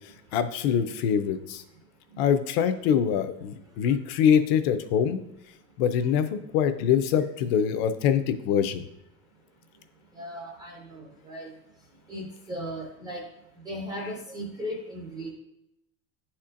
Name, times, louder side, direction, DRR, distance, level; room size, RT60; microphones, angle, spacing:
voice 1, 0.3-1.6 2.2-5.2 5.8-8.8, left 8 dB, 60° left, 10 dB, 0.6 m, -24 dB
voice 2, 10.2-11.5 12.1-13.2 13.7-15.3, equal, 10° right, -1 dB, 0.4 m, -37 dB
9.6 x 4.3 x 2.5 m, 0.85 s
cardioid pair, 175°, 35 cm